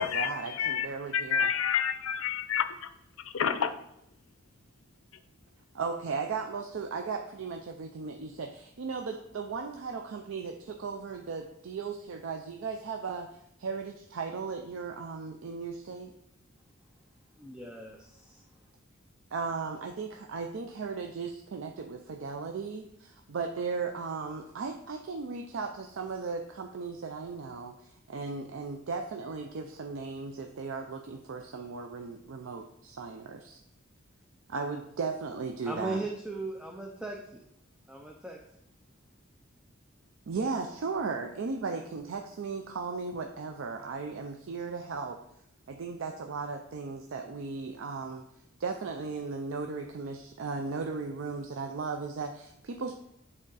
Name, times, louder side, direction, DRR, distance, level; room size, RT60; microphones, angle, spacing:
voice 1, 0.0-1.5 5.7-13.3 13.6-16.1 19.3-33.6 34.5-36.0 40.3-45.2 45.7-48.2 48.6-52.9, right 4 dB, 70° right, 0.4 m, -36 dB
voice 2, 1.1-2.7 3.3-3.7, left 8 dB, 85° left, 0.5 m, -28 dB
voice 3, 17.4-18.4 35.6-37.4 37.9-38.4, right 2 dB, 5° right, 0.4 m, -38 dB
7.6 x 3.6 x 4.0 m
head